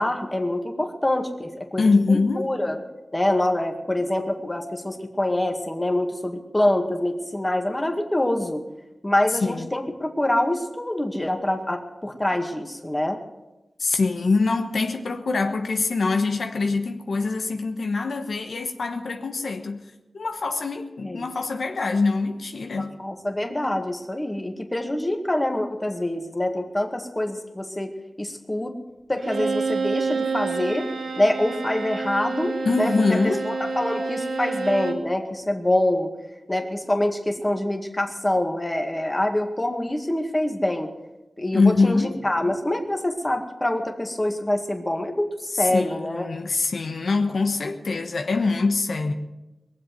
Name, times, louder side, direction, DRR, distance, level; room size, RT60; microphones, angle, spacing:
voice 1, 0.0-1.8 2.1-2.8 3.1-8.6 9.0-13.2 21.0-21.3 22.8-28.7 29.1-30.9 31.2-32.9 33.5-36.1 36.5-40.9 41.4-46.3, left 1 dB, 20° left, 2.0 m, -25 dB
voice 2, 1.8-2.5 9.3-9.7 13.8-19.9 20.1-23.0 32.6-33.5 41.5-42.2 45.5-49.1, left 3 dB, 80° left, 1.2 m, -24 dB
Bowed string instrument, 29.2-35.1, right 4 dB, 80° right, 1.5 m, -28 dB
21.5 x 7.7 x 7.8 m
wide cardioid pair, 70°, 0 cm